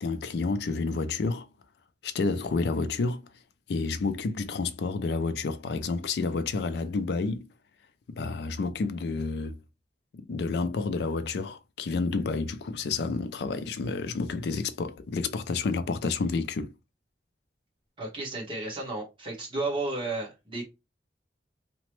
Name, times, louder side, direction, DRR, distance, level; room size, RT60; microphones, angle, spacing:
voice 1, 0.0-1.5 2.0-3.3 3.7-7.5 8.1-9.6 10.1-16.7, left 4 dB, 60° left, 0.4 m, -30 dB
voice 2, 18.0-20.6, right 2 dB, 30° right, 1.2 m, -33 dB
2.9 x 2.1 x 3.1 m
head